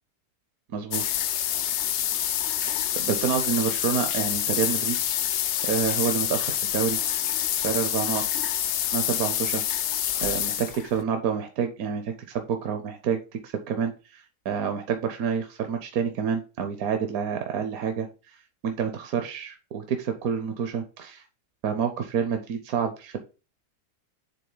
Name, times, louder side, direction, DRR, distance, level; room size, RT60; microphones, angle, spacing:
voice 1, 0.7-1.0 2.6-5.0 5.7-7.0 7.6-8.2 8.9-9.6 10.2-18.1 18.6-21.2 21.6-23.2, right 7 dB, 70° right, 6 dB, 1.1 m, -28 dB
sound 1, 0.9-11.0, left 11 dB, 75° left, 0.6 m, -27 dB
7.7 x 3.5 x 3.9 m, 0.33 s
omnidirectional pair, 1.7 m